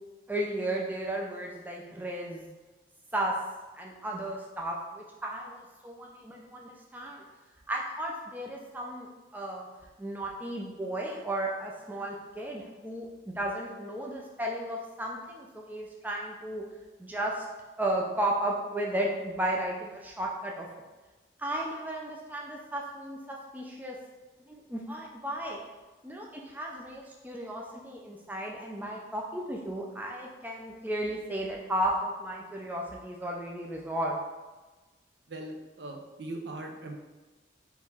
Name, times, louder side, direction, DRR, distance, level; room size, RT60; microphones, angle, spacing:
voice 1, 0.3-2.5 3.1-3.3 3.7-7.2 7.7-9.1 9.3-9.7 10.0-16.6 17.0-17.5 17.8-20.7 21.4-24.0 24.4-25.6 26.0-34.2, right 1 dB, 10° right, -1 dB, 0.4 m, -34 dB
voice 2, 35.3-37.0, right 2 dB, 65° right, 3 dB, 0.6 m, -40 dB
3.8 x 3.0 x 4.1 m, 1.2 s
head